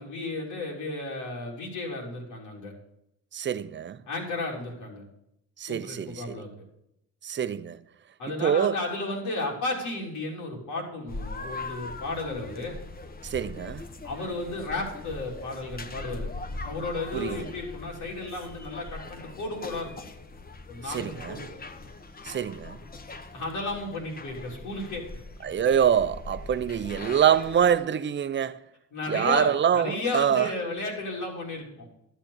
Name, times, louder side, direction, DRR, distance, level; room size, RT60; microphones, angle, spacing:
voice 1, 0.0-2.7 4.1-5.0 5.7-6.5 8.2-12.8 14.0-16.3 16.6-20.1 20.7-21.5 23.3-25.2 28.9-31.9, left 2 dB, 85° left, 3.7 m, -33 dB
voice 2, 3.3-4.0 5.6-6.4 7.2-7.8 8.3-8.8 13.2-13.9 17.1-17.5 20.9-21.4 22.2-22.8 25.4-28.6 29.1-30.5, right 8 dB, 40° right, 0.7 m, -25 dB
sound 1, 11.1-27.8, left 3 dB, 30° left, 1.2 m, -41 dB
12.0 x 7.4 x 6.6 m
cardioid pair, 90°, 30 cm